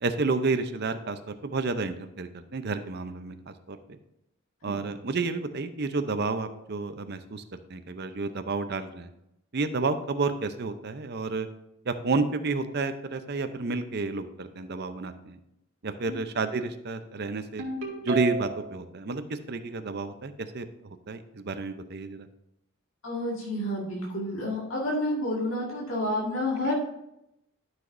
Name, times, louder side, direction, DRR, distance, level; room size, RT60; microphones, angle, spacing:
voice 1, 0.0-4.0 4.6-9.1 9.5-11.5 11.8-15.4 15.8-17.6 18.0-22.3, right 3 dB, 50° right, 9 dB, 0.6 m, -31 dB
Ringtone, 17.6-18.8, right 2 dB, 70° right, 2.1 m, -33 dB
voice 2, 23.0-26.8, left 1 dB, 70° left, -4 dB, 1.8 m, -29 dB
12.5 x 6.0 x 2.6 m, 0.83 s
head